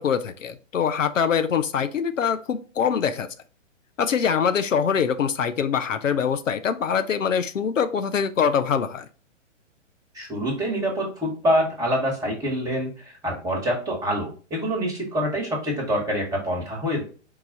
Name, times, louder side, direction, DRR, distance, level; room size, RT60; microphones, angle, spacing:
voice 1, 0.0-3.3 4.0-9.1, left 7 dB, 80° left, 10 dB, 0.6 m, -24 dB
voice 2, 10.1-17.0, equal, 10° right, -1 dB, 1.3 m, -26 dB
4.7 x 2.4 x 3.8 m, 0.38 s
figure-of-eight pair, 125°, 38 cm